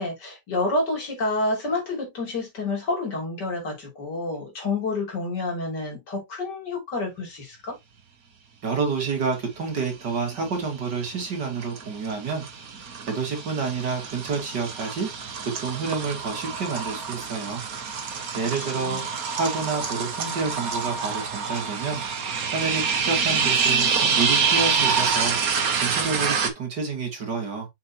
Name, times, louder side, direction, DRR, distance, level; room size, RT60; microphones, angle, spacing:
voice 1, 0.0-7.8 18.3-19.1, left 2 dB, 75° left, 3.7 m, -29 dB
voice 2, 8.6-12.4 13.1-15.1 15.6-17.6 18.4-19.0 19.4-22.0 22.5-25.6 25.8-27.7, right 4 dB, 75° right, 3.0 m, -29 dB
sound 1, 10.2-10.7 11.0-26.5, right 6 dB, 55° right, 1.6 m, -26 dB
6.8 x 5.9 x 2.8 m
omnidirectional pair, 1.9 m